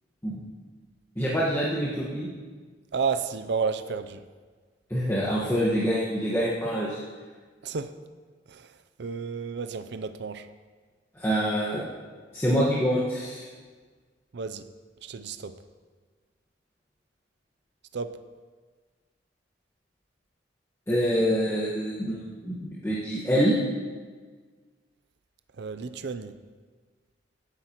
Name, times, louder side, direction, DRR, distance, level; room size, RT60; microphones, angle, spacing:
voice 1, 1.2-2.3 4.9-7.0 11.1-11.8 12.3-13.5 20.9-23.6, equal, 15° left, -8 dB, 1.4 m, -26 dB
voice 2, 2.9-4.2 7.6-7.9 8.5-8.7 9.0-10.5 14.3-14.6 15.0-15.6 17.9-18.2 25.6-26.4, right 5 dB, 65° right, 11 dB, 0.5 m, -31 dB
17.0 x 9.8 x 3.0 m, 1.5 s
head